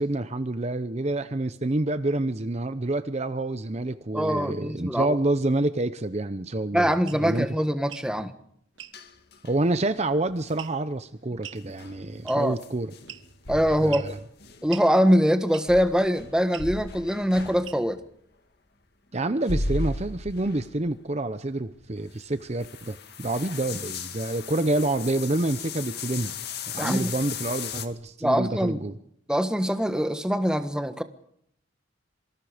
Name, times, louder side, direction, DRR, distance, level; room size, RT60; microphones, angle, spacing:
voice 1, 0.0-7.5 9.4-12.9 13.8-14.2 19.1-26.4 26.7-28.9, right 2 dB, 35° right, 0.8 m, -28 dB
voice 2, 4.1-5.2 6.7-8.3 12.2-12.6 13.5-14.2 14.6-18.0 26.8-27.1 28.2-28.8 29.3-31.0, equal, 5° right, 1.4 m, -23 dB
sound 1, 7.1-7.2 7.8-8.1 8.8-9.0 10.6-10.9 11.4-11.6 12.3-12.6 13.1-13.4 13.9-14.1 14.7-14.9 15.5-15.8 16.5-16.7 17.6-18.0, right 10 dB, 80° right, 1.4 m, -41 dB
sound 2, 8.9-9.8 10.3-10.6 11.6-15.0 15.7-18.1 19.3-21.0 21.3-21.4 21.8-27.9, left 3 dB, 55° left, 2.1 m, -36 dB
26.5 x 24.5 x 5.1 m
head